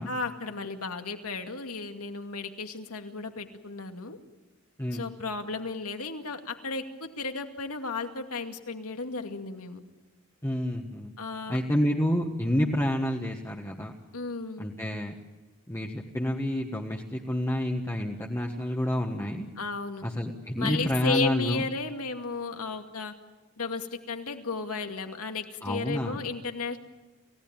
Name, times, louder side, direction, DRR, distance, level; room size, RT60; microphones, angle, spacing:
voice 1, 0.1-4.2 4.9-9.8 11.2-11.6 14.1-14.7 19.6-20.1 20.6-23.1 23.6-26.8, left 4 dB, 90° left, 5 dB, 2.3 m, -34 dB
voice 2, 10.4-11.1 11.5-13.9 14.6-15.1 15.7-19.5 20.0-21.6 25.6-26.2, left 1 dB, 10° left, 0 dB, 1.4 m, -29 dB
29.0 x 17.5 x 8.9 m, 1.2 s
head